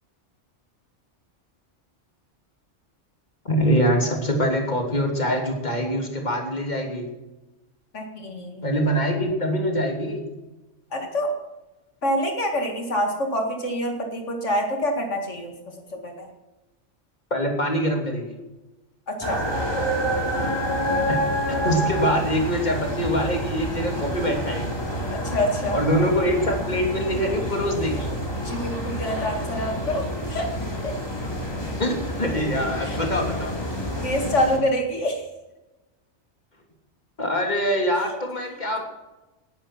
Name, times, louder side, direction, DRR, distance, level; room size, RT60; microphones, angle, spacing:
voice 1, 3.4-7.1 8.6-10.2 17.3-18.4 21.1-21.2 21.5-24.8 25.7-28.1 31.8-33.6 37.2-38.8, equal, 35° left, 2 dB, 3.1 m, -24 dB
voice 2, 7.9-8.6 10.9-11.3 12.0-15.5 16.0-16.3 19.1-19.4 25.2-25.8 28.4-30.0 30.3-30.5 30.8-30.9 32.8-33.0 34.0-35.2, equal, 80° left, 2 dB, 2.5 m, -26 dB
sound 1, 19.2-34.6, equal, 20° left, 3.1 m, -28 dB
19.0 x 11.0 x 6.0 m, 1.0 s
omnidirectional pair, 1.2 m